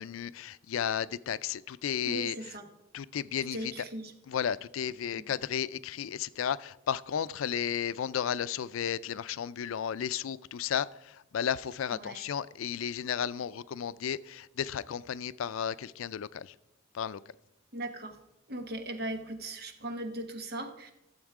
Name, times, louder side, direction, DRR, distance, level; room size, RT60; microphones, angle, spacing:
voice 1, 0.0-2.5 2.9-3.8 4.3-16.6 16.9-17.2, left 8 dB, 85° left, 18 dB, 0.4 m, -33 dB
voice 2, 2.0-2.7 3.5-4.1 5.1-5.3 11.9-12.2 17.7-18.2 18.5-20.9, right 1 dB, 50° right, 6 dB, 1.2 m, -38 dB
12.5 x 7.2 x 4.8 m, 0.89 s
head